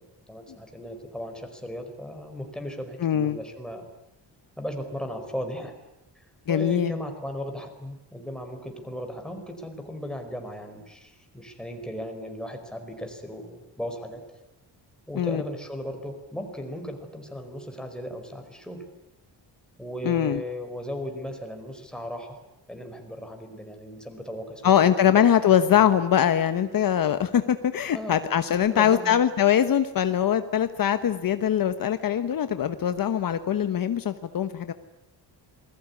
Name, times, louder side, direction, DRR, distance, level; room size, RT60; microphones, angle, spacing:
voice 1, 0.0-3.9 4.6-5.7 6.1-14.2 15.1-18.9 19.8-22.4 22.7-25.1 25.4-25.8 27.9-28.3 28.7-29.2, equal, ahead, 5 dB, 4.7 m, -36 dB
voice 2, 3.0-3.4 6.5-6.9 15.2-15.4 20.0-20.4 24.6-34.7, left 9 dB, 55° left, 10 dB, 1.2 m, -22 dB
27.5 x 21.0 x 9.7 m, 0.88 s
wide cardioid pair, 155°, 41 cm